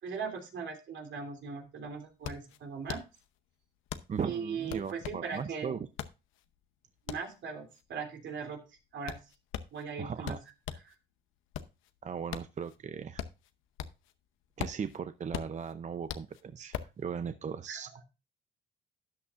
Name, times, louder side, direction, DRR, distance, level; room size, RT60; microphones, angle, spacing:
voice 1, 0.0-3.0 4.2-5.8 7.1-8.6 8.9-9.2 9.7-10.4 10.8-10.9 17.7-18.0, right 5 dB, 70° right, 4 dB, 2.9 m, -39 dB
sound 1, 1.3-1.4 1.6-10.9 11.3-14.2 14.4-17.0, left 10 dB, 90° left, 0.8 m, -41 dB
voice 2, 4.1-5.8 10.0-10.4 12.0-13.2 14.6-18.0, right 6 dB, 35° right, 11 dB, 0.6 m, -38 dB
12.5 x 8.6 x 2.4 m, 0.28 s
cardioid pair, 90°, 20 cm